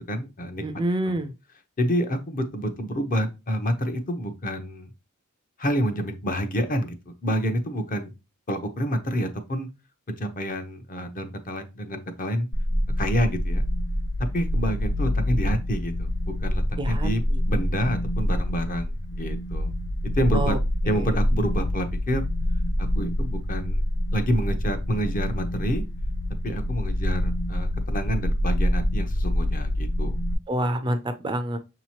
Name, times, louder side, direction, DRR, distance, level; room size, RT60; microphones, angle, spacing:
voice 1, 0.0-0.6 1.1-1.2 1.8-4.9 5.6-6.9 7.2-8.1 8.5-9.7 10.1-12.5 13.0-13.6 14.3-19.7 20.0-20.6 20.8-22.3 22.8-23.8 24.1-25.8 26.4-30.1, equal, 40° left, 7 dB, 0.7 m, -28 dB
voice 2, 0.6-1.3 16.8-17.4 20.3-20.6 20.9-21.0 30.5-31.6, right 1 dB, 20° right, 10 dB, 0.4 m, -27 dB
sound 1, 12.5-30.3, left 1 dB, 70° left, 0.7 m, -26 dB
6.3 x 2.9 x 2.9 m, 0.27 s
head